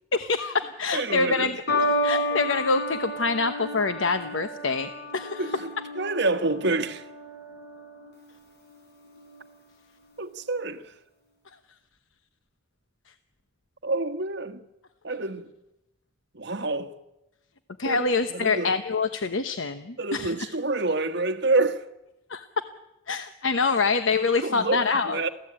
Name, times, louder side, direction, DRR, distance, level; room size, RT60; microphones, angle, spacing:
voice 1, 0.1-1.6 2.0-5.5 17.8-20.6 22.3-22.6 23.1-25.2, left 4 dB, 75° left, 1.0 m, -26 dB
voice 2, 0.9-1.5 5.2-5.7 5.9-7.0 10.2-10.9 13.8-14.6 15.0-15.5 16.3-16.9 17.8-18.1 18.3-18.7 20.0-21.9 24.4-25.3, right 3 dB, 60° right, 1.5 m, -27 dB
sound 1, 1.7-8.2 9.0-9.5, left 1 dB, 60° left, 6.8 m, -31 dB
27.5 x 16.0 x 8.8 m
head